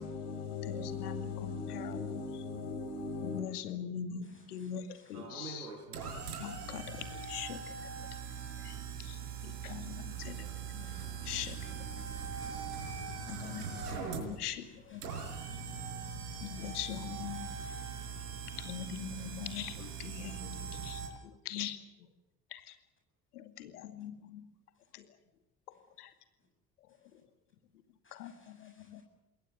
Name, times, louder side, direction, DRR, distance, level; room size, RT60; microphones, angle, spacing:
voice 1, 0.0-3.5, left 4 dB, 65° left, 6.2 m, -39 dB
voice 2, 0.7-2.0 3.2-4.8 5.1-5.7 6.4-7.6 8.6-8.7 9.1-9.2 9.6-10.5 10.7-10.9 11.3-11.6 13.3-14.6 14.9-15.0 16.4-17.5 18.6-21.0 21.5-21.8 22.5-22.6 23.4-24.4 26.0-26.1 28.1-29.0, left 9 dB, 85° left, 2.4 m, -42 dB
voice 3, 4.2-5.2 7.5-7.7 10.8-11.0 12.5-12.7 13.7-15.1 17.3-18.3 19.1-20.0 28.0-29.0, left 2 dB, 25° left, 7.9 m, -65 dB
sound 1, 5.1-21.1, right 6 dB, 85° right, 4.9 m, -41 dB
28.0 x 21.5 x 6.8 m
hypercardioid pair, 60°, 45 cm